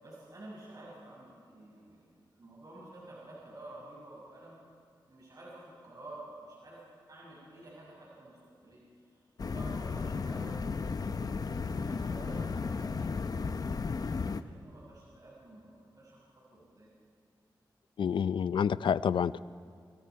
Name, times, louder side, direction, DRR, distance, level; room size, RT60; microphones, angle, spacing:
voice 1, 0.0-4.6 5.1-6.8 7.1-8.8 9.1-10.6 11.0-13.6 13.9-16.2 16.5-16.9, right 1 dB, 50° right, -5 dB, 6.1 m, -50 dB
sound 1, 9.4-14.4, left 4 dB, 50° left, 0.8 m, -34 dB
voice 2, 18.0-19.4, left 7 dB, 80° left, 16 dB, 0.5 m, -28 dB
28.0 x 26.0 x 4.7 m, 2.2 s
wide cardioid pair, 95°, 8 cm